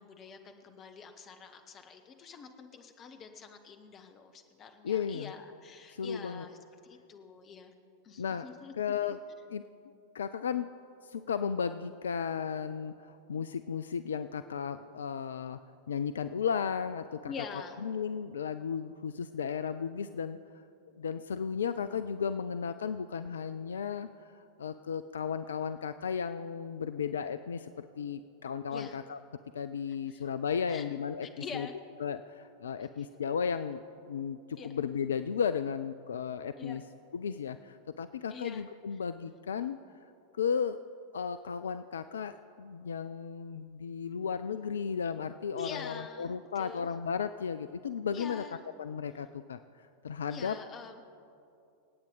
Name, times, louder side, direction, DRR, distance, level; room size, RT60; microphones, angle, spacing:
voice 1, 0.0-6.6 6.8-7.7 8.0-8.9 17.3-17.8 28.7-29.0 30.1-30.3 30.7-30.9 31.2-31.7 33.0-33.2 34.6-34.7 36.6-36.8 38.3-38.6 45.5-46.9 48.1-48.6 50.3-51.0, left 5 dB, 30° left, 7 dB, 1.2 m, -46 dB
voice 2, 4.8-5.3 5.9-6.5 8.2-8.5 8.8-9.2 9.5-9.6 10.1-10.7 11.0-15.6 15.9-17.3 17.8-20.4 21.0-29.2 29.5-31.3 31.5-31.7 32.0-33.8 34.1-36.8 37.1-39.8 40.3-40.8 41.1-48.4 48.8-50.6, left 7 dB, 65° left, 11 dB, 0.3 m, -34 dB
26.5 x 8.8 x 3.9 m, 2.6 s
figure-of-eight pair, 90°, 0 cm